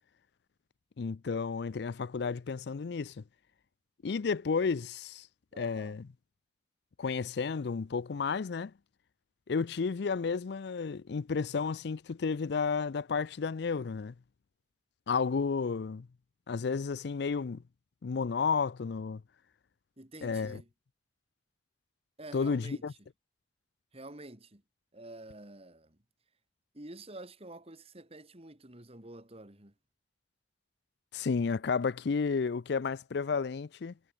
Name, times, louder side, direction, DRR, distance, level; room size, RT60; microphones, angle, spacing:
voice 1, 1.0-3.2 4.0-5.3 5.6-6.1 7.0-8.7 9.5-14.1 15.1-16.1 16.5-17.6 18.0-19.2 20.2-20.6 22.3-22.9 31.1-33.9, left 5 dB, 65° left, 0.5 m, -32 dB
voice 2, 5.5-6.0 20.0-20.7 22.2-23.1 23.9-24.6 24.9-26.0 26.7-29.7, right 2 dB, 35° right, 2.9 m, -49 dB
head